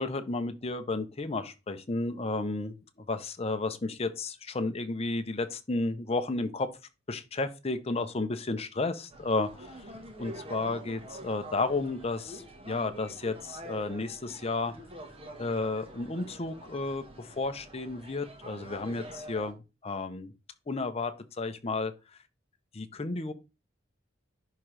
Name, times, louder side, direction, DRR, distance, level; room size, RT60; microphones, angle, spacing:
voice 1, 0.0-2.7 3.1-6.7 7.1-9.8 10.2-14.7 15.4-20.3 20.7-21.9 22.7-23.3, left 3 dB, 30° left, 0.7 m, -32 dB
sound 1, 9.1-19.5, right 1 dB, 30° right, 1.3 m, -46 dB
10.5 x 3.7 x 3.3 m
head